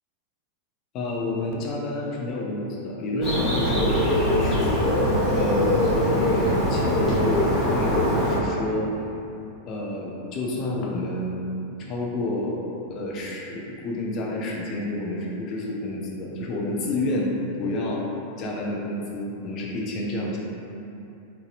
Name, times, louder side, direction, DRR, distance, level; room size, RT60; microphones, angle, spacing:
voice 1, 0.9-4.8 5.3-8.9 9.7-11.5 11.8-12.6 12.9-17.3 17.6-18.0 18.4-20.4, left 1 dB, 35° left, -3 dB, 0.6 m, -29 dB
Bird, 3.2-8.4, left 1 dB, 20° left, 1.2 m, -22 dB
3.9 x 2.7 x 2.5 m, 2.8 s
figure-of-eight pair, 90°, 0 cm